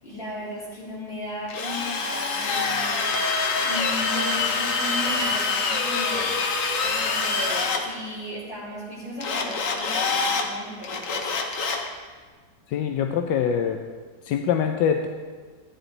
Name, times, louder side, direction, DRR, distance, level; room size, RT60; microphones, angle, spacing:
voice 1, 0.0-6.4 6.8-11.3, left 1 dB, 30° left, -8 dB, 4.1 m, -36 dB
Drill, 1.5-7.8 9.2-10.5 10.8-11.9, left 4 dB, 50° left, 1.2 m, -25 dB
voice 2, 12.7-13.8 14.2-15.1, left 8 dB, 80° left, 6 dB, 1.2 m, -24 dB
14.0 x 9.8 x 3.9 m, 1.5 s
omnidirectional pair, 2.0 m